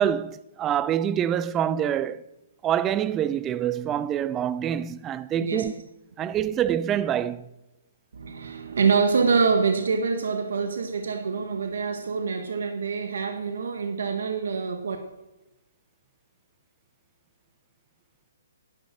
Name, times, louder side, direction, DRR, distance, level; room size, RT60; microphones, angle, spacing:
voice 1, 0.0-2.2 2.6-5.7 6.2-7.5, right 10 dB, 15° right, 0.3 m, -26 dB
voice 2, 8.1-15.0, right 5 dB, 70° right, 1.6 m, -25 dB
11.0 x 9.8 x 6.5 m
hypercardioid pair, 170°, 0 cm